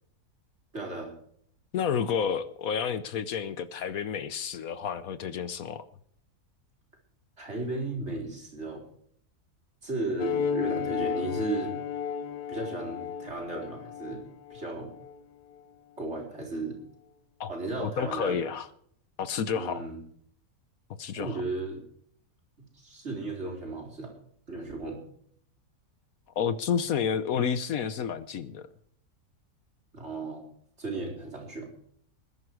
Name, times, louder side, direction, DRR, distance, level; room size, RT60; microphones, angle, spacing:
voice 1, 0.7-1.1 7.4-8.8 9.8-11.8 12.5-14.2 14.5-14.9 16.0-16.8 17.5-18.4 19.5-20.0 21.2-21.8 22.7-24.1 24.5-25.0 29.9-30.4 30.8-31.7, right 2 dB, 45° right, 0 dB, 4.5 m, -35 dB
voice 2, 1.7-5.8 17.4-17.5 17.8-18.7 19.2-19.8 21.0-21.4 26.4-28.7, left 7 dB, 70° left, 13 dB, 1.2 m, -30 dB
sound 1, 10.2-15.1, left 7 dB, 85° left, 1.5 m, -33 dB
20.5 x 11.0 x 4.8 m, 0.64 s
omnidirectional pair, 1.6 m